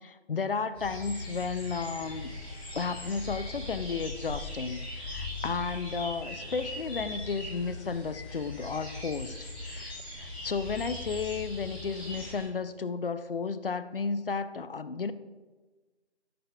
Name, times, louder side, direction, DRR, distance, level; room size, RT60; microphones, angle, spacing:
voice 1, 0.0-2.3 2.7-9.4 9.6-15.1, left 5 dB, 55° left, 13 dB, 0.5 m, -33 dB
sound 1, 0.7-12.4, left 2 dB, 10° left, 1.3 m, -40 dB
12.0 x 7.6 x 2.3 m, 1.3 s
figure-of-eight pair, 170°, 34 cm